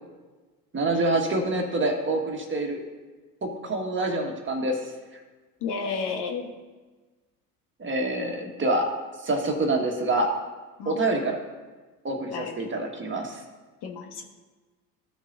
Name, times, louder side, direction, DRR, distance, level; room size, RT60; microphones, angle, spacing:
voice 1, 0.7-2.8 3.4-4.9 7.8-8.9 9.2-10.3 10.8-11.4 12.0-13.4, right 2 dB, 25° right, 2 dB, 1.6 m, -26 dB
voice 2, 5.6-6.5 10.8-11.0 12.3-12.7 13.8-14.2, left 5 dB, 55° left, 3 dB, 1.3 m, -32 dB
14.5 x 6.2 x 2.7 m, 1.3 s
hypercardioid pair, 75°, 47 cm